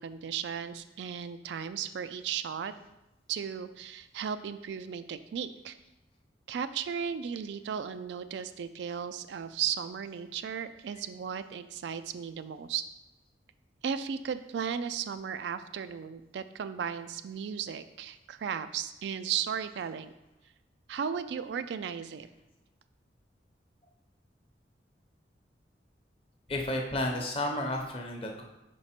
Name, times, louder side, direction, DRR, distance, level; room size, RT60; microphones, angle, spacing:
voice 1, 0.0-2.7 3.3-5.8 6.5-12.8 13.8-20.1 20.9-22.3, right 7 dB, 75° right, 12 dB, 0.3 m, -35 dB
voice 2, 26.5-28.4, left 1 dB, 30° left, 2 dB, 0.8 m, -32 dB
4.9 x 4.6 x 4.3 m, 0.92 s
head